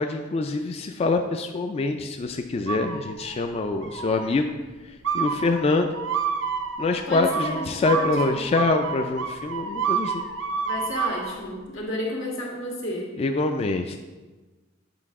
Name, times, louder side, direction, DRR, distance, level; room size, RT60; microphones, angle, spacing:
voice 1, 0.0-4.5 5.1-5.9 6.8-10.3 13.2-14.0, left 3 dB, 30° left, 5 dB, 0.3 m, -25 dB
sound 1, 2.7-3.4 3.8-4.4 5.0-11.4, right 6 dB, 70° right, 0.6 m, -29 dB
voice 2, 7.1-8.4 10.6-13.1, left 1 dB, 90° left, -3 dB, 1.7 m, -32 dB
7.8 x 4.8 x 3.6 m, 1.2 s
head